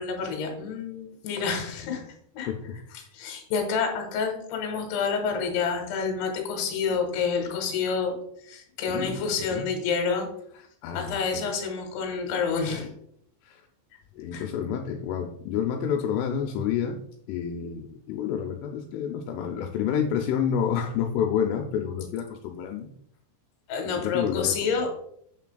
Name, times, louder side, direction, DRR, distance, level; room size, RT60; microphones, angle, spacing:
voice 1, 0.0-2.0 2.3-2.5 2.9-8.1 8.4-10.3 10.9-12.9 14.3-14.5 23.7-24.9, left 5 dB, 65° left, 2 dB, 3.0 m, -28 dB
voice 2, 2.5-2.8 8.9-9.2 9.5-9.7 10.8-11.4 13.4-13.7 14.2-17.0 17.3-22.9 23.8-24.9, left 8 dB, 85° left, 3 dB, 3.0 m, -29 dB
8.9 x 5.8 x 2.3 m, 0.69 s
omnidirectional pair, 5.7 m